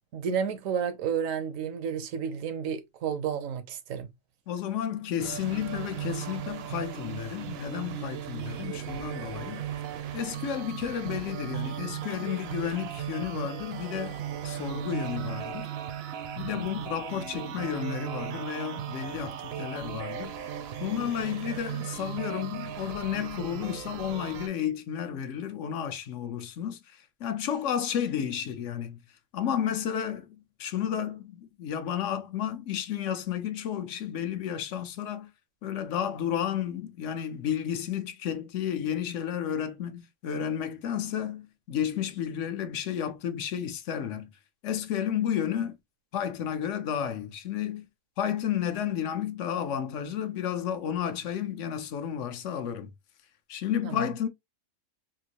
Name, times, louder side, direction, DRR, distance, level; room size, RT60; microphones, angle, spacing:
voice 1, 0.1-4.1 16.6-16.9 53.8-54.0, right 7 dB, 80° right, 1.1 m, -31 dB
voice 2, 4.5-9.6 10.1-14.2 14.4-15.7 16.4-29.0 29.3-35.3 35.6-44.3 44.6-45.8 46.1-47.8 48.2-52.9 53.5-54.3, left 9 dB, 70° left, 0.9 m, -32 dB
sound 1, 5.2-24.5, right 10 dB, 65° right, 0.7 m, -37 dB
3.7 x 2.5 x 2.8 m
omnidirectional pair, 1.4 m